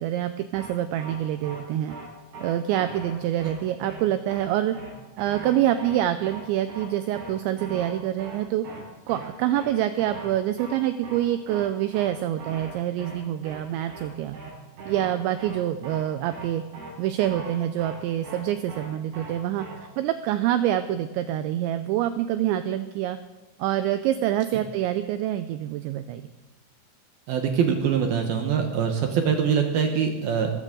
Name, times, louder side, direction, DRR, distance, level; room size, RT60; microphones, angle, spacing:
voice 1, 0.0-2.0 2.4-4.8 5.2-8.7 9.1-14.4 14.9-16.6 17.0-19.6 20.0-23.2 23.6-26.2, right 12 dB, 85° right, 10 dB, 2.6 m, -26 dB
sound 1, 0.5-0.7 1.0-1.2 1.4-1.6 1.9-2.1 2.3-2.5 2.8-3.1 3.4-3.6 3.8-4.0 4.3-4.5 4.7-4.9 5.2-5.5 5.8-6.0 6.2-6.4 6.7-6.9 7.1-7.3 7.6-7.9 8.2-8.4 8.6-8.8 9.1-9.3 9.5-9.7 10.0-10.3 10.6-10.8 11.0-11.2 11.5-11.7 11.9-12.1 12.4-12.7 13.0-13.2 13.4-13.6 13.9-14.1 14.3-14.5 14.8-15.1 15.4-15.6 15.8-16.0 16.3-16.5 16.7-16.9 17.2-17.5 17.8-18.0 18.2-18.4 18.7-18.9 19.1-19.3 19.6-19.7, right 3 dB, 55° right, 7.0 m, -40 dB
voice 2, 27.3-30.5, right 7 dB, 70° right, 4 dB, 2.4 m, -23 dB
21.5 x 14.0 x 3.8 m, 1.2 s
omnidirectional pair, 5.9 m